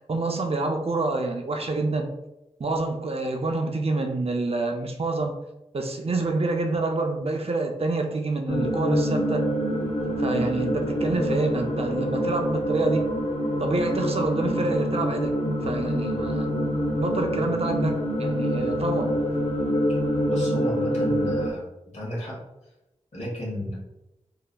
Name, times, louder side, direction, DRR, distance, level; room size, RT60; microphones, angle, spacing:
voice 1, 0.1-2.1 2.6-5.4 5.7-9.5 10.2-13.1 13.6-16.5 17.0-19.2, right 2 dB, 60° right, 4 dB, 0.4 m, -27 dB
sound 1, 8.5-21.5, equal, 60° left, 0.5 m, -26 dB
voice 2, 20.3-21.6 21.9-22.4 23.1-23.8, equal, 80° left, -5 dB, 1.4 m, -32 dB
4.0 x 2.7 x 2.2 m, 0.95 s
wide cardioid pair, 60°, 11 cm